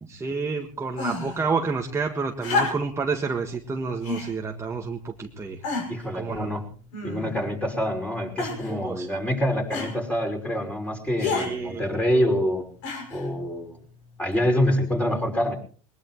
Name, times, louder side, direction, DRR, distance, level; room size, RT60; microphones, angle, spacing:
voice 1, 0.0-5.6 6.1-6.5 8.7-9.1 11.2-11.8, right 4 dB, 15° right, 2 dB, 1.6 m, -29 dB
sound 1, 0.9-1.4 2.4-3.1 4.0-4.3 5.1-5.2 5.6-6.1 6.9-7.5 8.4-8.8 9.7-10.0 11.2-11.5 12.8-13.3 14.3-14.4, left 3 dB, 70° left, 6.3 m, -29 dB
voice 2, 5.9-6.6 7.0-12.7 13.1-13.8 14.2-15.6, equal, 5° left, 2 dB, 5.5 m, -26 dB
21.0 x 20.5 x 3.1 m, 0.41 s
supercardioid pair, 110°, 17 cm